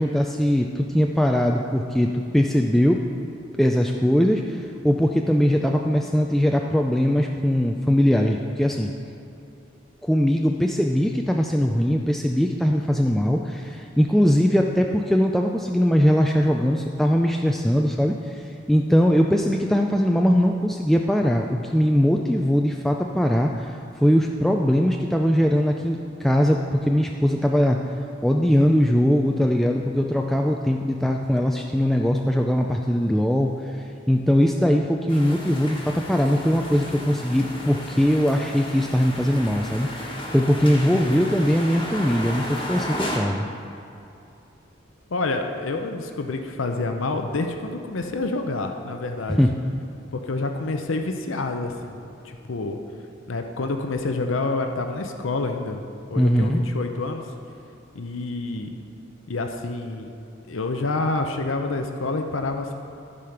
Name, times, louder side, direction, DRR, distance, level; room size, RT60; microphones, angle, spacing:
voice 1, 0.0-3.0 3.6-8.9 10.0-27.9 28.2-43.5 49.3-49.5 56.2-56.6, equal, ahead, 1 dB, 0.3 m, -21 dB
sound 1, 35.1-43.2, left 1 dB, 25° left, 1.3 m, -34 dB
voice 2, 45.1-49.4 50.1-52.8 53.3-55.8 56.1-57.2 57.9-58.7 59.3-60.1 60.5-62.7, left 3 dB, 85° left, 5 dB, 0.7 m, -28 dB
14.0 x 5.0 x 5.8 m, 2.7 s
head